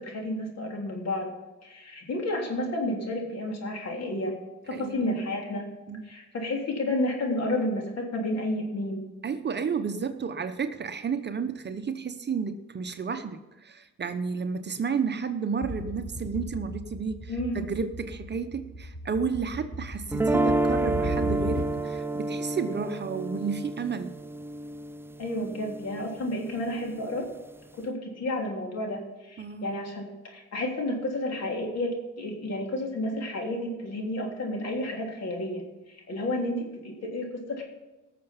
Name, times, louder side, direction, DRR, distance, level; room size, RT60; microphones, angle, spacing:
voice 1, 0.0-1.3 1.6-4.4 4.7-5.7 6.0-9.1 17.3-17.6 25.2-27.3 27.7-37.6, left 1 dB, 55° left, 1 dB, 3.4 m, -31 dB
voice 2, 4.7-5.1 5.9-6.1 9.2-24.1 29.4-29.7, right 5 dB, 35° right, 9 dB, 0.9 m, -32 dB
sound 1, 15.6-22.0, equal, 15° left, 4.3 m, -37 dB
sound 2, 20.1-26.2, right 2 dB, 10° right, 0.4 m, -29 dB
18.0 x 6.8 x 5.8 m, 1.1 s
cardioid pair, 90°, 30 cm